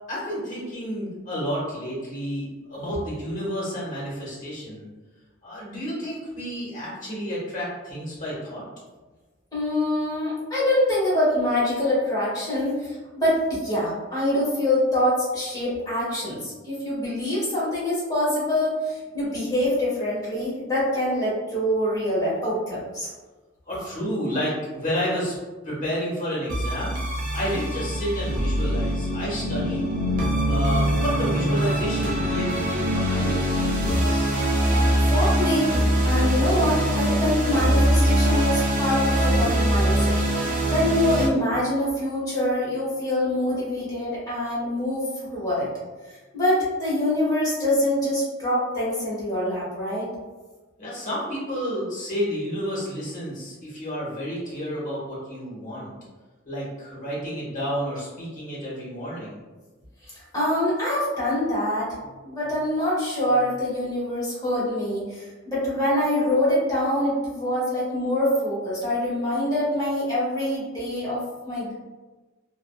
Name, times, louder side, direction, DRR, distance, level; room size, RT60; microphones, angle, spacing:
voice 1, 0.1-4.9 5.4-8.6 23.0-23.1 23.7-25.4 25.6-26.9 27.3-29.9 30.5-34.3 50.8-55.9 56.4-59.4, equal, 40° left, -7 dB, 1.1 m, -30 dB
voice 2, 9.5-23.1 34.7-35.7 36.0-45.0 45.3-45.7 46.3-50.1 60.0-61.9 62.2-71.7, left 1 dB, 20° left, -9 dB, 1.2 m, -25 dB
sound 1, 26.5-41.3, right 1 dB, 45° right, 0.5 m, -23 dB
2.6 x 2.3 x 2.2 m, 1.3 s
head